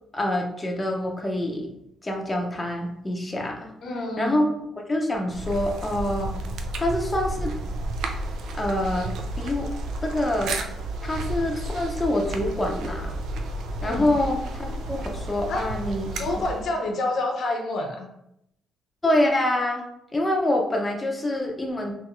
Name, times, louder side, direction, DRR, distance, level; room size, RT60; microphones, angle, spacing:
voice 1, 0.1-1.7 2.0-3.7 4.2-4.5 4.9-6.4 6.8-7.6 8.5-9.7 10.0-10.6 11.0-13.1 13.8-16.2 19.0-19.8 20.1-21.9, left 1 dB, 20° left, 0 dB, 0.7 m, -26 dB
voice 2, 3.8-4.4 13.8-14.1 15.5-15.7 16.1-18.1, left 2 dB, 65° left, 2 dB, 0.7 m, -28 dB
sound 1, 5.3-16.7, right 2 dB, 75° right, 0.5 m, -32 dB
3.6 x 3.0 x 3.1 m, 0.78 s
cardioid pair, 90°, 0 cm